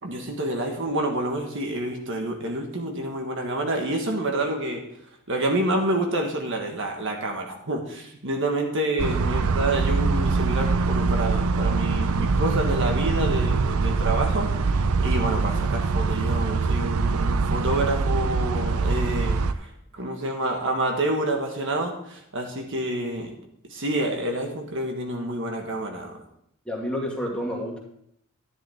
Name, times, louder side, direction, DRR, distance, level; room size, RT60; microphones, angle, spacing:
voice 1, 0.0-4.8 5.3-23.4 23.7-26.2, right 1 dB, 60° right, 2 dB, 1.5 m, -28 dB
sound 1, 9.0-19.5, right 4 dB, 75° right, 0.5 m, -23 dB
voice 2, 26.7-27.8, equal, 5° left, -3 dB, 2.3 m, -29 dB
11.0 x 10.5 x 3.6 m, 0.71 s
head